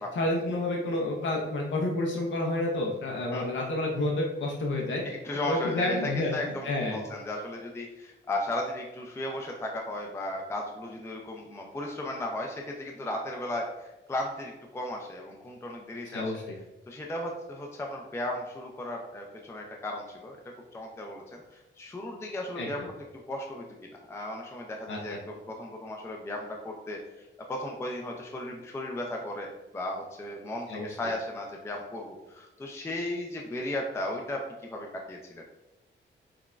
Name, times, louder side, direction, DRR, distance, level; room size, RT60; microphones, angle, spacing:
voice 1, 0.2-5.0 5.5-7.0 16.1-16.5 22.6-22.7 24.9-25.0 30.7-30.9, left 2 dB, 70° left, 0 dB, 0.6 m, -29 dB
voice 2, 5.0-16.3 16.9-20.4 20.7-22.8 23.3-23.7 24.1-35.4, left 1 dB, 15° left, 1 dB, 0.4 m, -35 dB
5.9 x 2.2 x 2.4 m, 1.0 s
wide cardioid pair, 125°, 20 cm